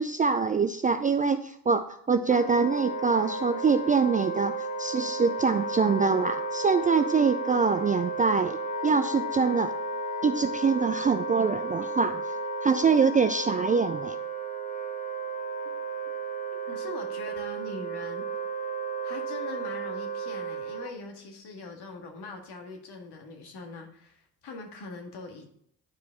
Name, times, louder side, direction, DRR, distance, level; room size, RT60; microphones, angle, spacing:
voice 1, 0.0-9.7 10.2-12.2 12.6-14.2, right 5 dB, 20° right, 8 dB, 0.3 m, -24 dB
Wind instrument woodwind instrument, 2.3-20.9, right 2 dB, 15° left, 1.2 m, -33 dB
voice 2, 16.7-18.3 19.0-25.5, left 3 dB, 55° left, 3 dB, 1.8 m, -42 dB
11.0 x 4.7 x 3.5 m, 0.68 s
hypercardioid pair, 45°, 47 cm